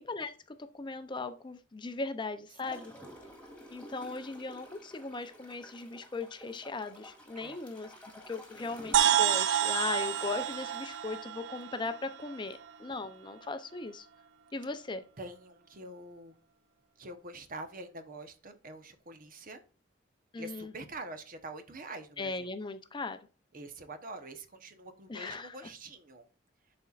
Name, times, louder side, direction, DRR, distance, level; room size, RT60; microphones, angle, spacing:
voice 1, 0.0-2.9 3.7-7.9 8.3-14.1 14.5-15.0 20.3-20.7 22.2-23.2 25.1-25.6, left 3 dB, 25° left, 10 dB, 0.5 m, -38 dB
Gurgling / Toilet flush, 2.6-12.0 12.5-12.6, equal, 5° left, 2.0 m, -51 dB
sound 1, 8.9-12.7, right 10 dB, 90° right, 0.5 m, -29 dB
voice 2, 15.2-16.3 17.0-19.6 20.4-22.5 23.5-26.2, right 2 dB, 50° right, 8 dB, 0.9 m, -45 dB
11.0 x 4.3 x 2.4 m, 0.36 s
head